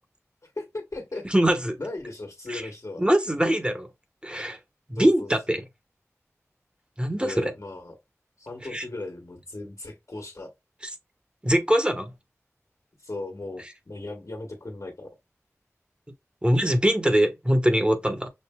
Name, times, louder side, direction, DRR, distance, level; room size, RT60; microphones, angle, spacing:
voice 1, 0.4-1.3 1.8-3.0 4.9-5.6 7.2-7.9 8.4-10.5 13.0-15.1, left 2 dB, 70° left, 1.5 m, -37 dB
voice 2, 1.3-1.8 2.5-2.6 3.0-3.9 4.2-4.6 4.9-5.6 7.0-7.5 8.7-8.8 11.4-12.1 16.4-18.3, equal, 20° right, 1.1 m, -22 dB
6.5 x 2.6 x 2.3 m
wide cardioid pair, 45°, 5 cm